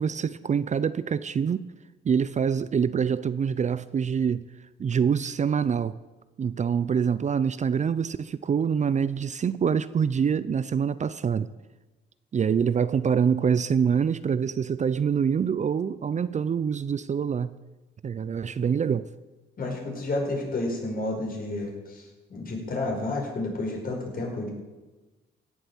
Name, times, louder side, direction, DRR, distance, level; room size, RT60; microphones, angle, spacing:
voice 1, 0.0-1.7 2.0-4.4 4.8-5.9 6.4-11.5 12.3-17.5 18.0-19.1, right 7 dB, 35° right, 15 dB, 0.5 m, -25 dB
voice 2, 19.6-24.5, left 2 dB, 45° left, 0 dB, 5.2 m, -31 dB
17.0 x 8.0 x 7.3 m, 1.2 s
cardioid pair, 90°, 20 cm